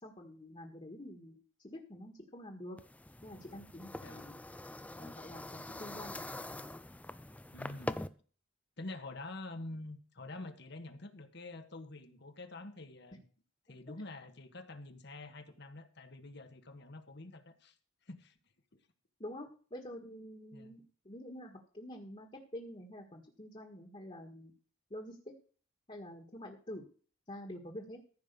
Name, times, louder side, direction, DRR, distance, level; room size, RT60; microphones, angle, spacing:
voice 1, 0.0-2.8 3.2-4.4 5.0-6.2 19.2-24.5 24.9-25.3 25.9-26.9 27.3-28.0, left 1 dB, 30° left, 2 dB, 1.7 m, -47 dB
sound 1, 2.8-8.1, left 1 dB, 5° left, 0.5 m, -44 dB
voice 2, 7.5-8.0 8.8-13.2 13.7-17.8 18.0-18.3 18.7-18.9 20.5-20.7, left 2 dB, 55° left, 7 dB, 1.5 m, -47 dB
14.5 x 5.4 x 6.9 m, 0.41 s
head